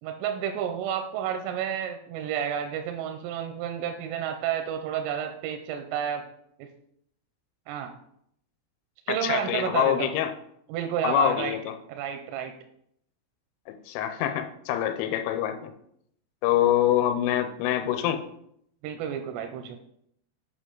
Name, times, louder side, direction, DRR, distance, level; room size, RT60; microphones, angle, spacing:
voice 1, 0.0-6.2 6.6-6.7 7.7-7.9 9.1-10.1 10.7-11.6 11.9-12.5 18.8-19.8, right 9 dB, 85° right, 5 dB, 3.2 m, -31 dB
voice 2, 9.2-10.3 11.0-11.6 13.9-15.7 16.4-18.2, left 11 dB, 90° left, 7 dB, 3.2 m, -25 dB
8.3 x 5.8 x 3.8 m, 0.72 s
omnidirectional pair, 5.8 m